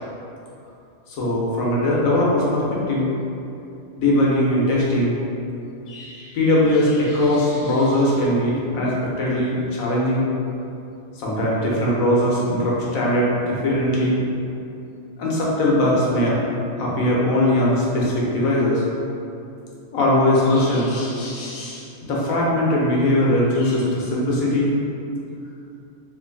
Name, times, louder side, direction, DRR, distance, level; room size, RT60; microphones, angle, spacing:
voice 1, 1.2-3.1 4.0-5.2 5.9-10.2 11.2-14.2 15.2-16.4 16.8-18.8 19.9-24.7, left 1 dB, 85° left, -5 dB, 1.2 m, -20 dB
2.9 x 2.5 x 3.8 m, 2.7 s
omnidirectional pair, 1.4 m